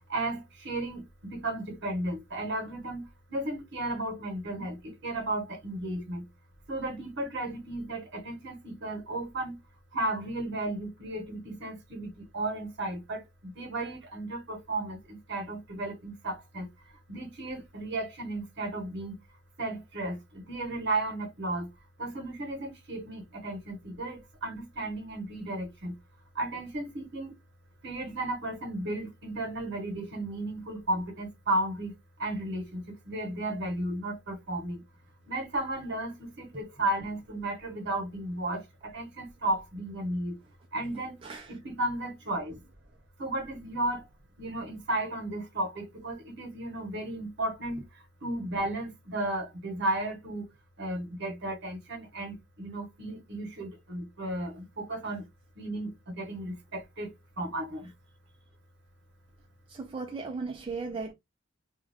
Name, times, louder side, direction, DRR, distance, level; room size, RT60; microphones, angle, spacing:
voice 1, 0.1-6.3 6.7-9.6 9.9-16.7 17.1-19.2 19.6-21.7 22.0-26.0 26.3-27.3 27.8-34.8 35.3-40.4 40.7-41.2 41.5-42.5 43.2-44.1 44.4-50.5 50.8-55.2 55.6-57.9, right 1 dB, 55° right, 0.9 m, -34 dB
voice 2, 59.7-61.1, right 4 dB, 25° right, 0.4 m, -36 dB
2.3 x 2.2 x 3.3 m
head